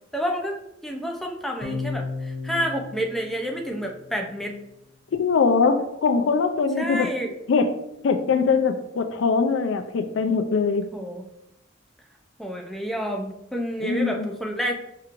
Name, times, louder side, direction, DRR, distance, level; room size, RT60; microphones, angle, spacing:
voice 1, 0.1-4.5 6.8-7.3 10.9-11.3 12.4-14.7, equal, ahead, 0 dB, 0.4 m, -29 dB
sound 1, 1.6-4.2, left 4 dB, 50° left, 0.8 m, -34 dB
voice 2, 5.2-7.1 7.5-7.7 8.0-10.9 13.8-14.3, left 5 dB, 80° left, 7 dB, 0.4 m, -22 dB
5.7 x 3.0 x 2.5 m, 0.84 s
head